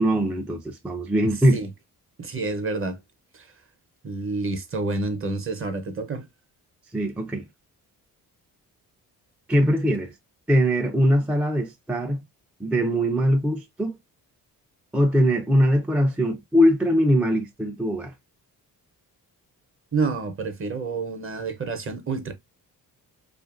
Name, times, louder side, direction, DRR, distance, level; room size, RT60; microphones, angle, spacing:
voice 1, 0.0-1.6 6.9-7.5 9.5-10.1 10.5-12.2 12.6-14.0 14.9-18.1, equal, 5° right, 0.3 m, -21 dB
voice 2, 2.2-3.0 3.3-3.5 4.0-6.3 19.9-22.3, right 3 dB, 35° right, 0.7 m, -28 dB
2.8 x 2.5 x 2.4 m
cardioid pair, 95°, 36 cm